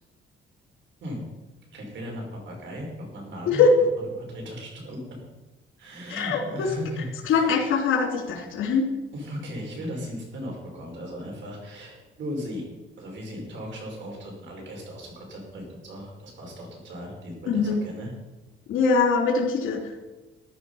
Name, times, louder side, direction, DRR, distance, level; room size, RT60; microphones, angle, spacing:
voice 1, 1.7-3.6 4.2-5.2 5.8-7.5 9.1-12.7 13.0-18.1, equal, 65° right, 0 dB, 5.3 m, -37 dB
voice 2, 6.1-6.7 7.3-8.9 17.5-17.8 18.7-20.0, left 4 dB, 85° left, 3 dB, 3.0 m, -22 dB
14.0 x 11.0 x 5.6 m, 1.1 s
cardioid pair, 125°, 20 cm